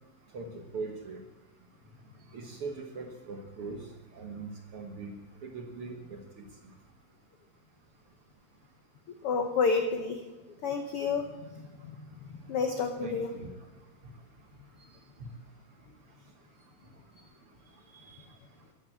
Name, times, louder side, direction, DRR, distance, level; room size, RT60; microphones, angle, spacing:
voice 1, 0.3-1.2 2.3-5.1 5.4-6.7 13.0-13.5 15.2-15.3, right 4 dB, 60° right, 3 dB, 1.5 m, -41 dB
voice 2, 9.2-10.2 10.6-11.2 11.8-12.0 12.5-13.3 17.9-18.1, left 5 dB, 80° left, 5 dB, 1.2 m, -29 dB
12.5 x 11.0 x 7.7 m, 1.2 s
omnidirectional pair, 3.9 m